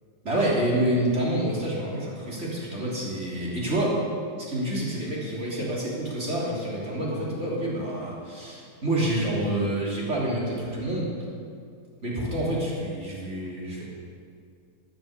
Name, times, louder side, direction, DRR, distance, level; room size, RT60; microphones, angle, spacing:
voice 1, 0.2-4.0 4.4-11.1 12.0-13.8, right 1 dB, 45° right, -6 dB, 3.7 m, -28 dB
12.5 x 10.5 x 6.8 m, 2.2 s
omnidirectional pair, 1.7 m